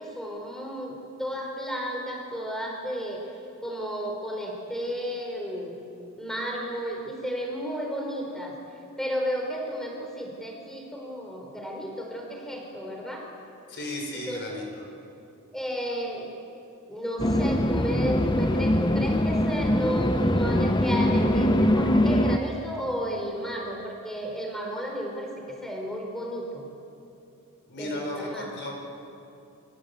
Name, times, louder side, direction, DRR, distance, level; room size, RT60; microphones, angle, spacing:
voice 1, 0.0-3.2 3.6-5.7 6.2-8.5 9.0-13.2 14.1-14.6 15.5-16.3 16.9-26.7 27.8-28.5, equal, ahead, 0 dB, 5.0 m, -33 dB
voice 2, 13.7-14.8 27.7-28.7, left 1 dB, 50° left, 1 dB, 5.1 m, -34 dB
sound 1, 17.2-22.4, left 1 dB, 20° left, 0.8 m, -23 dB
28.5 x 24.0 x 8.5 m, 2.7 s
head